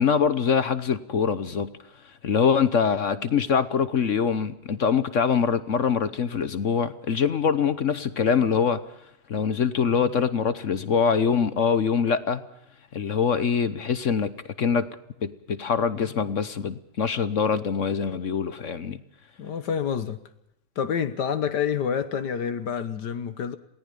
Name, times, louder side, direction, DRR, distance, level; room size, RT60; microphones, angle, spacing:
voice 1, 0.0-1.7 2.2-8.8 9.3-12.4 12.9-14.9 15.2-19.0, left 6 dB, 50° left, 1.1 m, -24 dB
voice 2, 19.4-20.2 20.8-23.6, left 7 dB, 70° left, 1.7 m, -28 dB
28.0 x 18.5 x 5.3 m
omnidirectional pair, 1.9 m